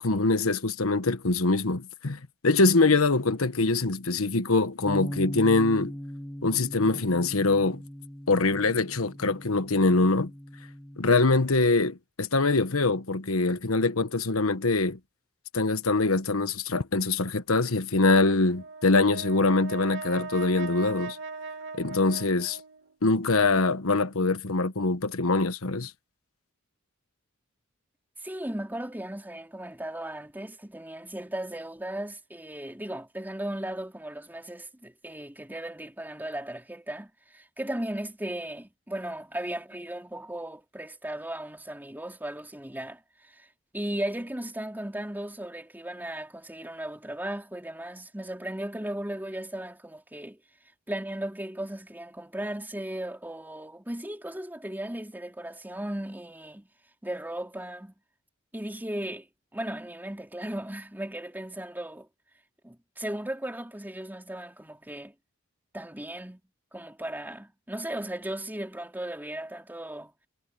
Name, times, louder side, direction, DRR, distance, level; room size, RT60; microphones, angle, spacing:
voice 1, 0.0-5.9 6.4-7.8 8.3-10.3 11.0-15.0 15.5-21.2 21.8-22.6 23.0-25.9, left 3 dB, 80° left, 1.3 m, -24 dB
Bass guitar, 4.9-11.1, equal, 5° left, 1.8 m, -39 dB
Brass instrument, 18.5-22.9, right 4 dB, 65° right, 3.4 m, -39 dB
voice 2, 28.2-43.5 43.7-50.4 50.9-56.7 57.0-57.9 58.5-59.3 59.5-62.1 62.6-65.1 65.7-66.4 66.7-70.1, right 1 dB, 10° right, 3.6 m, -36 dB
head